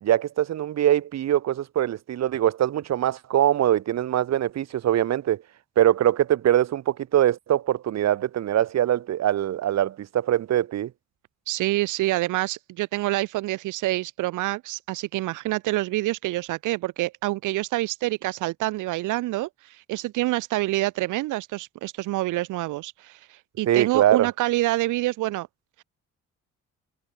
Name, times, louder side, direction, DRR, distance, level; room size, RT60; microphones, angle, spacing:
voice 1, 0.0-5.4 5.8-10.9 23.7-24.3, right 11 dB, 60° right, 1.2 m, -23 dB
voice 2, 11.5-25.5, right 18 dB, 90° right, 0.9 m, -27 dB
cardioid pair, 90°, 30 cm